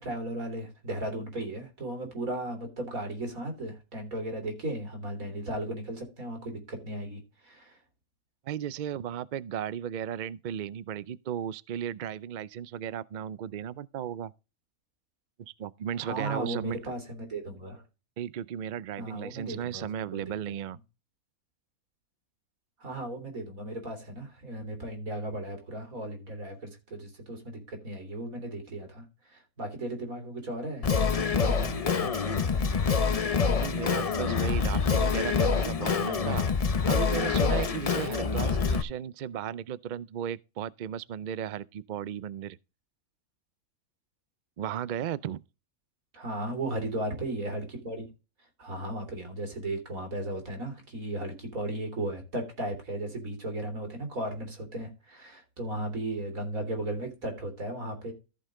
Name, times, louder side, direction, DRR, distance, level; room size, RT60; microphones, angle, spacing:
voice 1, 0.0-7.8 16.0-17.8 19.0-19.9 20.1-20.3 22.8-32.7 46.1-48.1 48.6-58.1, right 1 dB, 70° right, 3.9 m, -36 dB
voice 2, 8.4-14.3 15.4-16.8 18.2-20.8 33.6-36.4 36.8-42.6 44.6-45.4, right 9 dB, 85° right, 0.4 m, -35 dB
Singing, 30.8-38.8, left 5 dB, 40° left, 0.5 m, -26 dB
14.5 x 5.3 x 3.7 m
omnidirectional pair, 1.5 m